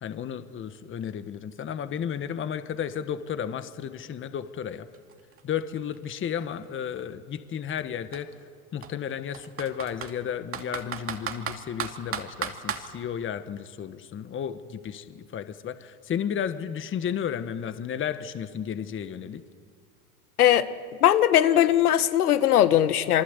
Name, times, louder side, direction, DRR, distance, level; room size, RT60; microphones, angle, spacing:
voice 1, 0.0-4.9 5.4-8.3 8.7-19.4, left 8 dB, 25° left, 11 dB, 1.4 m, -33 dB
Computer keyboard, 4.6-4.7 4.9-6.9 7.7-7.8 8.1-8.2 8.8-10.1 10.5-12.9, right 7 dB, 30° right, 2.6 m, -34 dB
voice 2, 21.0-23.2, left 11 dB, 85° left, 12 dB, 1.6 m, -20 dB
27.5 x 23.5 x 8.2 m, 2.1 s
hypercardioid pair, 100°, 44 cm